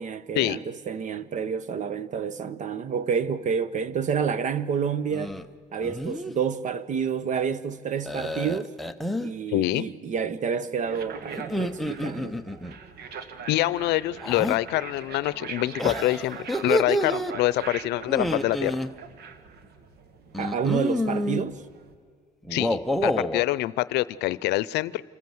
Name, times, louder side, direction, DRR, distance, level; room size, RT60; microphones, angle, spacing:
voice 1, 0.0-5.4 5.7-8.7 9.2-12.4 20.4-21.6, right 7 dB, 45° right, 1.0 m, -29 dB
sound 1, 5.1-5.5 5.8-6.3 8.1-9.3 11.4-12.8 14.2-14.6 15.8-17.3 18.1-18.9 20.3-21.4 22.4-23.4, left 1 dB, ahead, 0.8 m, -28 dB
voice 2, 9.5-9.9 13.5-18.8 22.5-25.0, left 17 dB, 80° left, 0.6 m, -25 dB
sound 2, 10.8-21.9, right 6 dB, 70° right, 1.6 m, -42 dB
27.0 x 14.5 x 7.8 m
cardioid pair, 110°, 17 cm